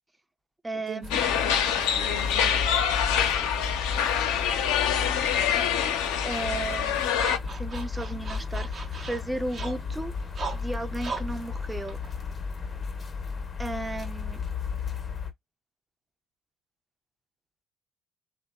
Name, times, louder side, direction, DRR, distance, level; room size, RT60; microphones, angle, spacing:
voice 1, 0.6-1.2 6.2-7.0 7.5-10.1 10.5-12.0 13.6-14.4, right 2 dB, 15° right, 0.6 m, -34 dB
sound 1, 1.0-15.3, left 5 dB, 35° left, 0.6 m, -34 dB
sound 2, 1.1-7.4, left 9 dB, 80° left, 0.5 m, -25 dB
voice 2, 1.4-3.7 5.0-5.5, right 5 dB, 90° right, 0.7 m, -46 dB
sound 3, 6.3-12.8, right 4 dB, 50° right, 0.8 m, -40 dB
2.6 x 2.1 x 2.2 m
hypercardioid pair, 60°, 0 cm